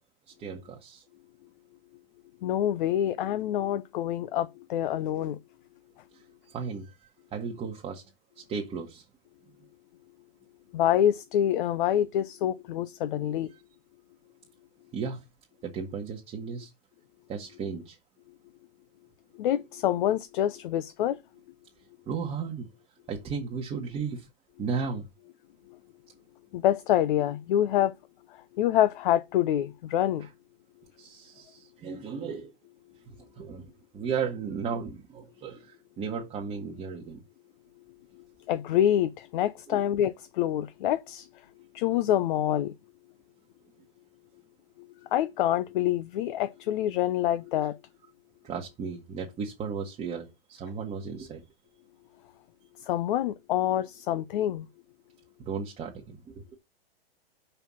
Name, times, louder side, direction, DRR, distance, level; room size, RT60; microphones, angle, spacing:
voice 1, 0.4-1.0 6.1-7.0 7.3-8.0 8.4-9.0 14.9-15.2 15.6-16.7 17.3-18.0 22.1-22.7 23.1-24.3 24.6-25.1 30.2-30.3 31.0-32.5 33.1-33.7 33.9-37.2 39.7-39.8 48.4-51.4 55.4-56.6, right 5 dB, 20° right, 1.3 m, -35 dB
voice 2, 2.4-5.4 10.7-13.5 19.4-21.2 26.5-27.9 28.3-30.3 38.5-41.3 41.7-42.7 45.1-47.8 52.8-54.7, left 11 dB, 55° left, 0.7 m, -26 dB
5.7 x 5.6 x 6.1 m
hypercardioid pair, 125°, 30 cm